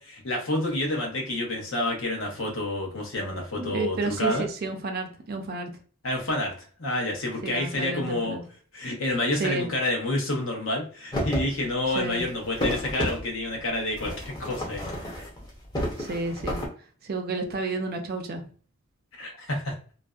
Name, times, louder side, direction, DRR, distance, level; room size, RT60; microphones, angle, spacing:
voice 1, 0.0-4.4 6.0-8.4 8.7-14.9 19.2-19.7, left 1 dB, 75° left, 0 dB, 0.9 m, -29 dB
voice 2, 3.6-5.7 7.4-8.4 9.4-9.7 12.0-12.2 16.0-16.6 17.0-18.4, right 3 dB, 45° right, 5 dB, 0.4 m, -31 dB
sound 1, 11.1-11.5 11.9-13.2 13.9-15.5 15.7-16.7, equal, 20° left, 0.6 m, -31 dB
2.5 x 2.1 x 2.3 m, 0.41 s
head